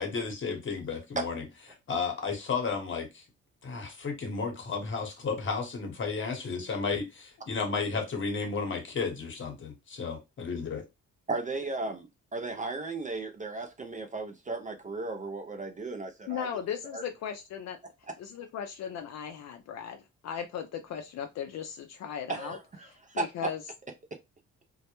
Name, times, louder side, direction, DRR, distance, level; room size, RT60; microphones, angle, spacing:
voice 1, 0.0-1.4 1.9-3.2 3.6-10.8, left 5 dB, 40° left, 0.9 m, -33 dB
voice 2, 11.3-16.5 16.9-17.0 22.3-23.5, right 3 dB, 25° right, 0.4 m, -35 dB
voice 3, 16.3-17.8 18.2-22.6 22.8-23.6, left 8 dB, 60° left, 0.4 m, -37 dB
2.2 x 2.0 x 2.9 m
cardioid pair, 90°, 30 cm